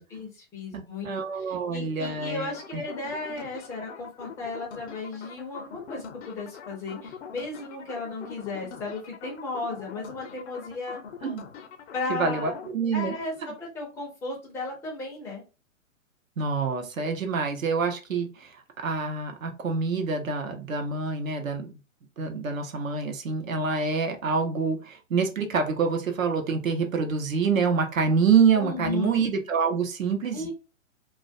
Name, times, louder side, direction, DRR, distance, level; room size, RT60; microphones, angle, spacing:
voice 1, 0.1-1.1 1.5-11.0 11.9-12.5 12.9-15.4 28.6-29.1 30.3-30.5, left 3 dB, 5° left, -2 dB, 0.4 m, -35 dB
voice 2, 0.7-2.8 11.2-11.5 12.1-13.1 16.4-21.8 22.2-30.5, right 5 dB, 80° right, 5 dB, 0.8 m, -26 dB
sound 1, 2.0-12.7, left 6 dB, 60° left, 0.6 m, -43 dB
2.3 x 2.1 x 2.5 m, 0.31 s
hypercardioid pair, 120°, 40 cm